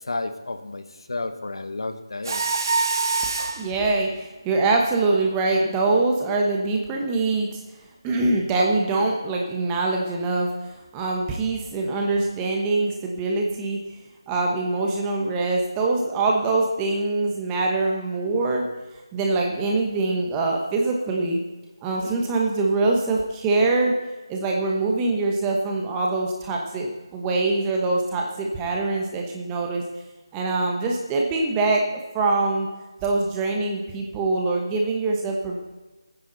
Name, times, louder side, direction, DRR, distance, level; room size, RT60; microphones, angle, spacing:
voice 1, 0.1-2.4, left 2 dB, 70° left, 8 dB, 1.2 m, -31 dB
Mechanisms, 2.2-3.7, right 4 dB, 50° right, 1.2 m, -24 dB
voice 2, 3.6-7.6 8.0-13.8 14.3-18.7 19.1-21.4 21.8-23.9 24.3-29.8 30.3-31.8 32.1-32.7 33.0-35.6, right 3 dB, 10° right, 0 dB, 1.1 m, -24 dB
18.0 x 9.9 x 4.0 m, 1.2 s
figure-of-eight pair, 165°, 3 cm